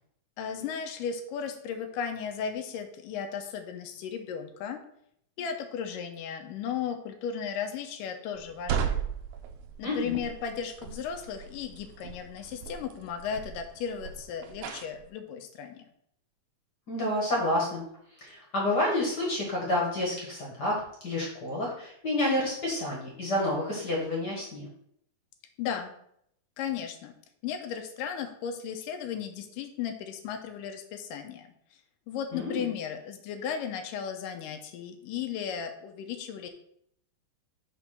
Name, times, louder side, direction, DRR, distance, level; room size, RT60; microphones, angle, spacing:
voice 1, 0.4-4.8 5.4-9.0 9.8-15.8 25.6-25.9 26.6-27.1 27.4-31.5 32.1-36.5, left 7 dB, 80° left, 6 dB, 2.3 m, -35 dB
sound 1, 8.4-15.1, right 8 dB, 75° right, 2.0 m, -36 dB
voice 2, 9.8-10.2 16.9-17.8 18.1-24.7 32.3-32.7, left 1 dB, 45° left, -2 dB, 1.5 m, -29 dB
6.1 x 3.9 x 5.8 m, 0.71 s
omnidirectional pair, 3.9 m